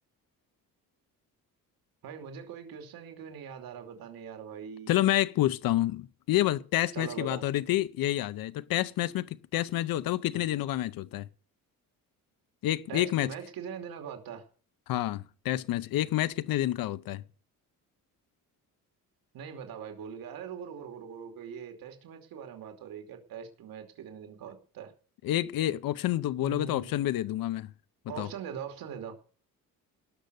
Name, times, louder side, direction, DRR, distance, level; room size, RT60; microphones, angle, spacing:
voice 1, 2.0-4.9 6.9-7.4 12.9-14.4 19.3-24.9 26.4-27.0 28.1-29.1, right 7 dB, 90° right, 2.8 m, -42 dB
voice 2, 4.9-11.3 12.6-13.3 14.9-17.2 25.2-27.7 28.2-28.3, left 14 dB, 80° left, 0.7 m, -28 dB
18.5 x 6.6 x 8.0 m
cardioid pair, 160°, 34 cm